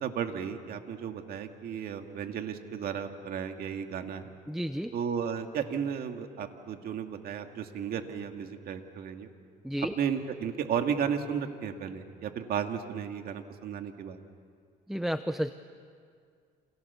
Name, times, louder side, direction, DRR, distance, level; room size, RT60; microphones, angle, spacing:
voice 1, 0.0-4.3 4.9-9.3 10.0-14.2, right 7 dB, 65° right, 5 dB, 2.2 m, -34 dB
voice 2, 4.5-4.9 9.6-9.9 14.9-15.5, equal, ahead, 10 dB, 0.7 m, -31 dB
29.5 x 27.5 x 7.0 m, 2.1 s
cardioid pair, 110°, 17 cm